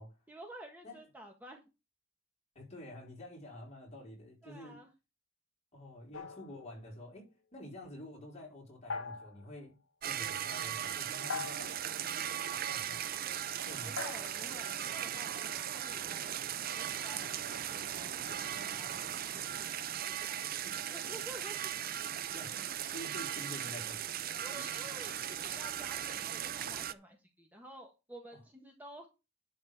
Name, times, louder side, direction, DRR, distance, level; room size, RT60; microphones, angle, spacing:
voice 1, 0.3-1.6 4.4-4.9 12.7-12.9 13.8-16.4 16.7-19.7 20.0-21.7 24.4-29.1, right 1 dB, 10° right, 1.4 m, -52 dB
voice 2, 2.5-4.8 5.7-9.8 10.0-11.7 12.5-13.0 13.6-14.0 20.6-20.8 22.3-22.7 22.9-24.0, left 1 dB, 35° left, 4.6 m, -48 dB
sound 1, 6.1-7.2 8.9-9.5 11.3-11.9 14.0-15.7, left 4 dB, 80° left, 1.5 m, -43 dB
sound 2, 10.0-26.9, right 10 dB, 45° right, 0.6 m, -38 dB
11.0 x 4.2 x 6.9 m
head